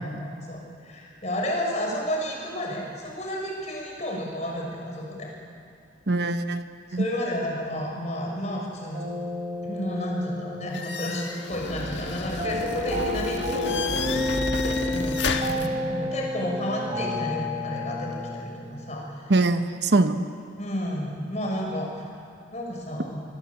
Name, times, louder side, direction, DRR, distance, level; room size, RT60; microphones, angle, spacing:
voice 1, 0.0-5.3 6.9-9.0 9.6-14.1 14.6-19.3 20.6-21.9 22.5-23.2, equal, 35° left, -1 dB, 6.1 m, -31 dB
voice 2, 6.1-7.1 19.3-20.3, right 2 dB, 55° right, 8 dB, 1.0 m, -23 dB
sound 1, 8.9-18.4, left 1 dB, 30° right, 5.2 m, -31 dB
sound 2, 10.7-15.7, left 3 dB, 65° left, 1.6 m, -31 dB
27.0 x 20.5 x 8.4 m, 2.3 s
head